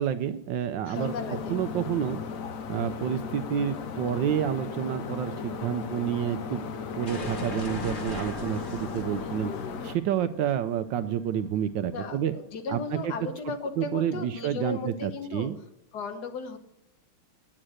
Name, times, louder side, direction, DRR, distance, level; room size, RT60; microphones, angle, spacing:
voice 1, 0.0-1.1 1.5-2.2 2.7-6.6 7.0-9.5 9.8-12.3 12.7-13.1 13.8-15.6, right 9 dB, 75° right, 11 dB, 1.1 m, -29 dB
voice 2, 0.8-1.6 9.2-9.9 11.9-15.5 15.9-16.6, left 4 dB, 55° left, 8 dB, 1.6 m, -36 dB
sound 1, 0.9-10.0, left 5 dB, 75° left, 0.7 m, -36 dB
sound 2, 7.1-11.8, left 2 dB, 35° left, 0.9 m, -39 dB
9.9 x 8.8 x 6.4 m, 0.79 s
omnidirectional pair, 2.4 m